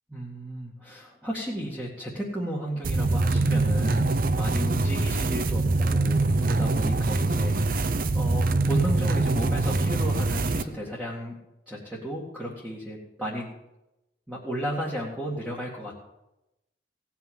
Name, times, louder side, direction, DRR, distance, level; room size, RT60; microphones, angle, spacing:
voice 1, 0.1-11.3 11.7-13.5 14.3-15.9, equal, 5° right, -6 dB, 2.1 m, -34 dB
sound 1, 2.8-10.6, right 2 dB, 50° right, 0.6 m, -24 dB
17.5 x 5.9 x 7.2 m, 0.92 s
head